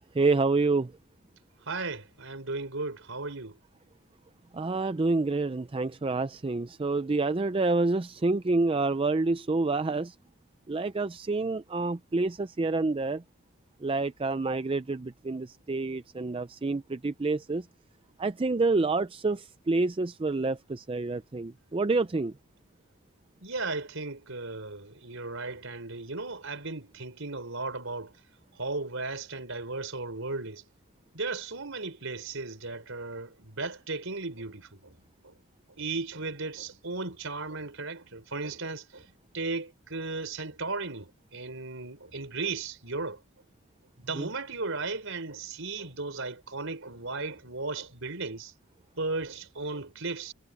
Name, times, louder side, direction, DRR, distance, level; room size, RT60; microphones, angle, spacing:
voice 1, 0.1-0.9 4.5-10.1 10.7-13.2 13.8-17.7 18.2-22.3 44.2-44.3, right 3 dB, 25° right, 0.4 m, -28 dB
voice 2, 1.6-3.6 23.4-28.1 28.5-30.6 31.1-35.4 35.8-43.2 44.0-48.5 49.0-50.3, right 3 dB, 65° right, 5.0 m, -36 dB
head